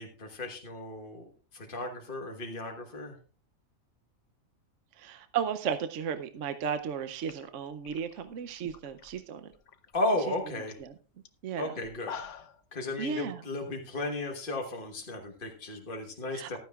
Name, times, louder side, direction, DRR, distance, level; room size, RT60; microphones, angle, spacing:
voice 1, 0.0-3.2 9.9-10.8 11.6-12.1 12.7-16.6, left 2 dB, 40° left, 1 dB, 1.5 m, -34 dB
voice 2, 5.0-9.5 10.8-10.9 11.4-11.7 13.0-13.4 16.3-16.6, right 7 dB, 65° right, 10 dB, 1.0 m, -34 dB
sound 1, 6.8-6.9 7.2-9.2 9.5-10.0 10.3-10.4 10.7-10.9 11.3-11.4 11.8-12.6, left 6 dB, 65° left, 1.2 m, -45 dB
15.0 x 12.5 x 2.4 m, 0.36 s
omnidirectional pair, 1.4 m